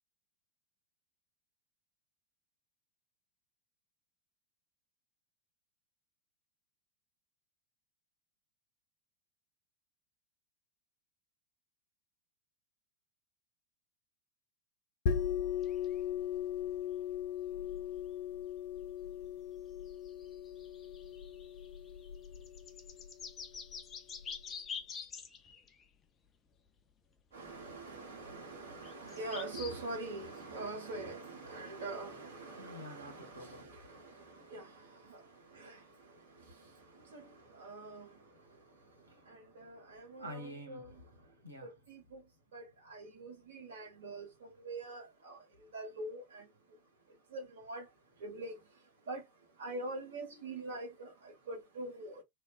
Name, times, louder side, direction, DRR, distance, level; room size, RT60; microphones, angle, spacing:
sound 1, 15.1-24.4, left 8 dB, 50° left, 0.9 m, -38 dB
sound 2, 15.6-16.0 16.9-17.0 19.2-19.3 19.5-19.6 19.9-25.8 27.5-27.6 28.8-29.7 30.4-30.5, left 6 dB, 25° left, 0.6 m, -47 dB
voice 1, 27.3-34.1 34.5-34.7 35.6-35.7 37.1-37.2 37.6-38.1 39.3-40.9 41.6-42.2 42.5-44.2 44.6-45.4 45.7-46.4 47.3-47.8 48.2-48.6 49.1-49.2 49.6-51.1 51.5-52.2, right 2 dB, 60° right, 1.7 m, -43 dB
voice 2, 32.6-37.3 37.6-41.8, equal, 80° right, 1.7 m, -53 dB
3.3 x 3.0 x 2.5 m
figure-of-eight pair, 90°, 0 cm